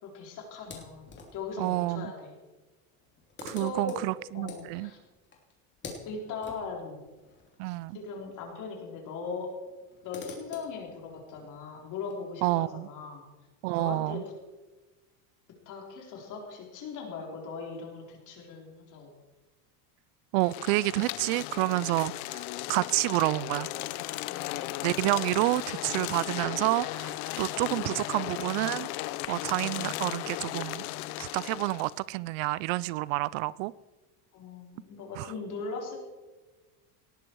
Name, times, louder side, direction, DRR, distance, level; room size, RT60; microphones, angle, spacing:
voice 1, 0.0-2.4 3.6-4.0 4.3-5.0 6.1-7.0 7.9-9.5 10.0-13.2 13.8-14.2 15.7-19.1 24.3-24.7 34.3-36.0, left 4 dB, 45° left, 3.9 m, -39 dB
sound 1, 0.6-1.6 2.6-2.7 2.9-8.5 8.7-8.8 9.6-12.1, left 4 dB, 25° left, 3.0 m, -48 dB
voice 2, 1.6-2.1 3.4-4.9 7.6-8.0 12.4-12.9 13.6-14.2 20.3-22.4 22.7-23.7 24.8-28.9 29.3-30.8 31.2-33.7 35.2-35.3, right 20 dB, 65° right, 0.5 m, -29 dB
sound 2, 20.4-32.0, left 16 dB, 85° left, 0.8 m, -36 dB
18.5 x 11.5 x 4.6 m
cardioid pair, 150°, 42 cm